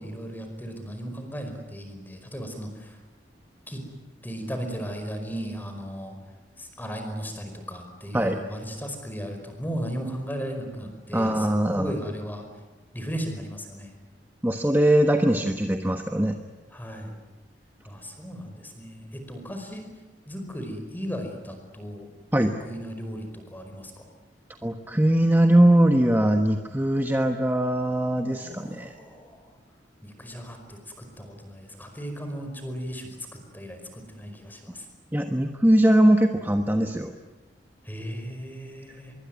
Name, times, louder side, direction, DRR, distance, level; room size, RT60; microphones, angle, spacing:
voice 1, 0.0-3.0 3.7-3.8 4.2-6.2 6.6-12.5 12.9-13.9 16.7-17.2 17.8-19.9 20.3-22.1 22.6-24.0 28.3-29.6 30.0-33.2 33.5-34.9 37.8-39.1, equal, 10° left, 5 dB, 5.1 m, -36 dB
voice 2, 11.1-11.9 14.4-16.4 22.3-22.5 24.6-28.9 35.1-37.1, right 1 dB, 10° right, 5 dB, 1.2 m, -21 dB
25.5 x 23.0 x 9.5 m, 1.1 s
head